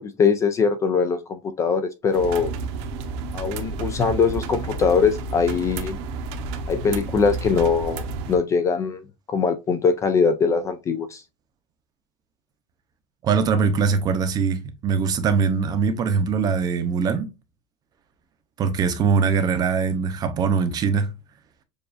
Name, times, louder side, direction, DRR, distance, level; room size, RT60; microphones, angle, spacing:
voice 1, 0.0-2.5 3.3-6.0 6.7-9.0 9.3-11.2, left 5 dB, 20° left, 0.3 m, -22 dB
sound 1, 2.1-8.4, right 3 dB, 65° right, 0.9 m, -31 dB
voice 2, 13.2-17.3 18.6-21.1, right 5 dB, 25° right, 0.6 m, -22 dB
6.9 x 2.5 x 2.5 m
cardioid pair, 165°, 15 cm